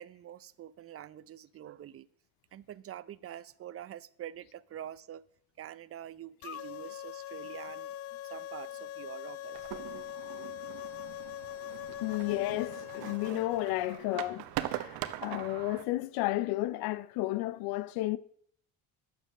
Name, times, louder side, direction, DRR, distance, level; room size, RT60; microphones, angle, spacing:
voice 1, 0.0-2.1 2.5-5.2 5.6-7.9 8.2-9.9, right 11 dB, 40° right, 0.6 m, -46 dB
sound 1, 6.4-13.6, left 12 dB, 40° left, 0.4 m, -42 dB
sound 2, 9.5-15.8, right 14 dB, 80° right, 0.9 m, -42 dB
voice 2, 12.0-18.2, left 17 dB, 85° left, 0.6 m, -32 dB
9.2 x 7.3 x 6.4 m
cardioid pair, 95°, 36 cm